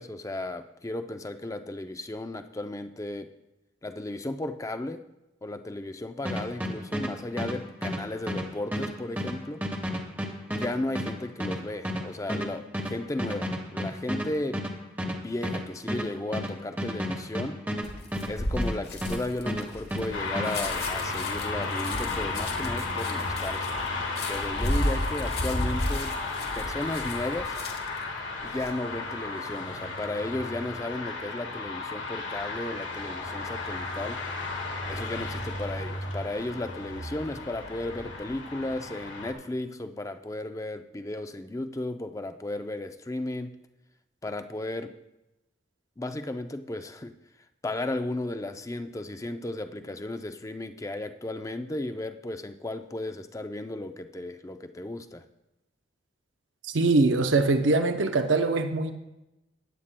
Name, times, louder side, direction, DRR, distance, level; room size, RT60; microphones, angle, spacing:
voice 1, 0.0-3.3 3.8-5.0 5.4-9.6 10.5-14.6 15.1-17.6 18.3-23.8 24.3-26.2 26.6-27.5 28.4-34.2 34.9-43.6 44.2-45.0 46.0-47.2 47.6-55.2, left 2 dB, 15° left, 0.5 m, -34 dB
sound 1, 6.2-19.2 19.5-20.6, equal, 10° right, 1.0 m, -32 dB
sound 2, 17.8-28.0 28.4-28.7, left 1 dB, 55° left, 1.3 m, -33 dB
sound 3, 20.1-39.3, left 3 dB, 85° left, 1.6 m, -34 dB
voice 2, 56.7-58.9, right 3 dB, 90° right, 0.7 m, -22 dB
16.0 x 9.8 x 2.2 m
head